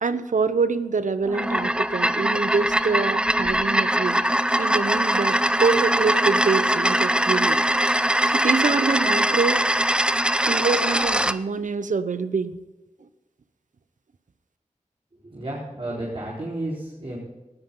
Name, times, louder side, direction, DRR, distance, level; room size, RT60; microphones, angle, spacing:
voice 1, 0.0-4.2 4.6-7.6 8.3-9.6 10.5-12.6, right 4 dB, 80° right, 12 dB, 0.9 m, -25 dB
sound 1, 1.3-11.4, right 1 dB, 5° right, 0.7 m, -22 dB
voice 2, 15.2-17.2, right 1 dB, 45° right, -5 dB, 4.6 m, -32 dB
19.0 x 13.5 x 3.9 m, 1.2 s
cardioid pair, 45°, 13 cm